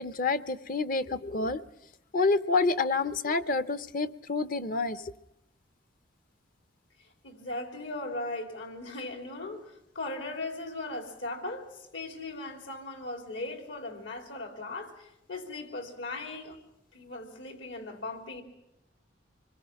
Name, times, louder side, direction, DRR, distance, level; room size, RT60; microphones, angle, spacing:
voice 1, 0.0-1.6 2.1-5.0, left 3 dB, 45° left, 13 dB, 0.7 m, -28 dB
voice 2, 7.0-16.6 16.9-18.4, left 2 dB, 75° left, 4 dB, 3.4 m, -38 dB
26.0 x 21.5 x 5.9 m, 0.87 s
head